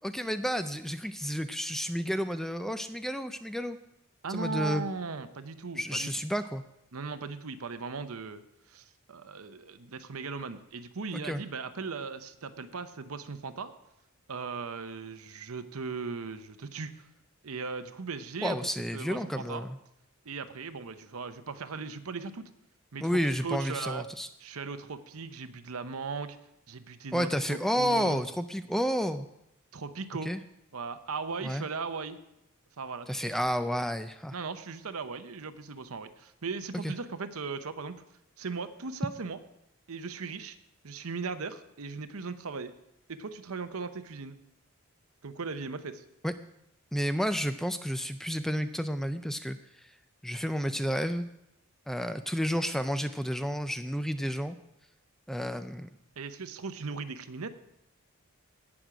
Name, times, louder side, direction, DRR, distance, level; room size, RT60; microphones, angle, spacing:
voice 1, 0.0-3.8 4.3-4.9 5.7-6.6 11.1-11.4 18.4-19.8 23.0-24.3 27.1-29.3 30.2-30.4 31.4-31.7 33.1-34.3 36.7-36.9 46.2-46.3 46.9-49.9 50.2-51.2 51.9-54.6 55.3-55.9, equal, ahead, 10 dB, 0.3 m, -31 dB
voice 2, 4.2-6.1 6.9-8.4 8.7-13.7 14.3-17.1 17.4-18.6 18.9-19.7 20.3-22.5 22.9-24.1 24.4-26.4 26.7-28.2 29.7-30.3 30.7-32.2 32.8-33.3 34.3-38.0 38.4-39.4 39.9-40.6 40.8-42.7 43.1-44.4 45.2-46.0 56.2-57.5, right 4 dB, 75° right, 10 dB, 0.8 m, -38 dB
17.5 x 6.2 x 5.0 m, 0.85 s
head